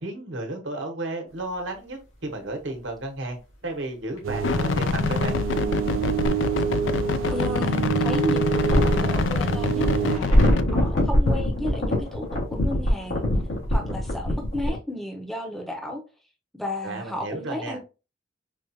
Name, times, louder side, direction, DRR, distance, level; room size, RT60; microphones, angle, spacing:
voice 1, 0.0-3.4 3.6-5.4 16.8-17.8, right 2 dB, 70° right, 1.0 m, -33 dB
sound 1, 4.2-4.3 6.4-7.6 8.4-14.8, left 1 dB, 90° left, 1.8 m, -23 dB
sound 2, 4.2-10.2, right 7 dB, 90° right, 0.3 m, -27 dB
sound 3, 4.4-10.6, left 5 dB, 60° left, 0.3 m, -26 dB
voice 2, 7.3-13.2 13.7-16.0 16.5-17.8, left 1 dB, ahead, 0.6 m, -33 dB
5.0 x 2.4 x 2.7 m
head